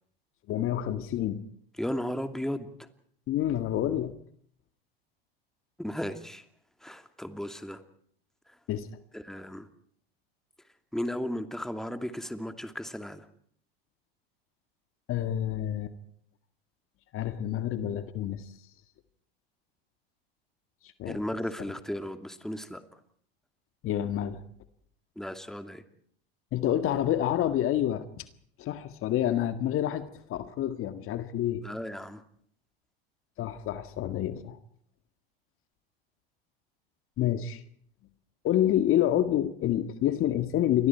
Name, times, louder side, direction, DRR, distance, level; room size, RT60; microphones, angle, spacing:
voice 1, 0.5-1.4 3.3-4.1 8.7-8.9 15.1-15.9 17.1-18.5 21.0-21.2 23.8-24.4 26.5-28.3 28.6-31.6 33.4-34.6 37.2-37.6 38.4-40.9, left 11 dB, 45° left, 10 dB, 1.9 m, -28 dB
voice 2, 1.8-2.9 5.8-6.4 6.8-7.8 9.1-9.7 10.9-13.3 21.1-22.8 25.2-25.8 31.6-32.2, equal, ahead, 8 dB, 2.6 m, -35 dB
29.0 x 25.0 x 4.6 m, 0.62 s
hypercardioid pair, 85°, 31 cm